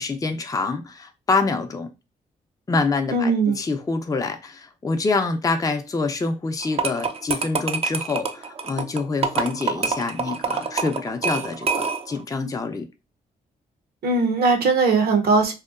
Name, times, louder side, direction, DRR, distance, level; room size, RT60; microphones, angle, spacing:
voice 1, 0.0-1.9 2.7-12.9, left 3 dB, 20° left, 0.5 m, -26 dB
voice 2, 3.1-3.6 14.0-15.5, right 4 dB, 70° right, 0.7 m, -19 dB
sound 1, 6.6-12.2, right 5 dB, 35° right, 0.4 m, -26 dB
2.8 x 2.1 x 2.4 m
supercardioid pair, 50°, 16 cm